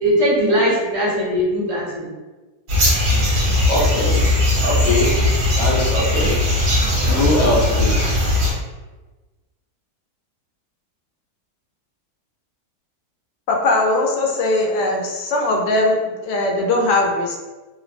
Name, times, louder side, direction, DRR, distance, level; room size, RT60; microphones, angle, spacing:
voice 1, 0.0-2.1, equal, 35° right, -7 dB, 0.6 m, -19 dB
sound 1, 2.7-8.5, left 1 dB, 70° right, 1.3 m, -18 dB
voice 2, 3.7-4.2 4.6-5.1 5.6-6.7 7.0-8.1, left 1 dB, 65° left, -3 dB, 1.0 m, -22 dB
voice 3, 13.5-17.4, left 2 dB, 85° left, 0 dB, 1.2 m, -20 dB
3.1 x 2.0 x 2.4 m, 1.2 s
omnidirectional pair, 1.8 m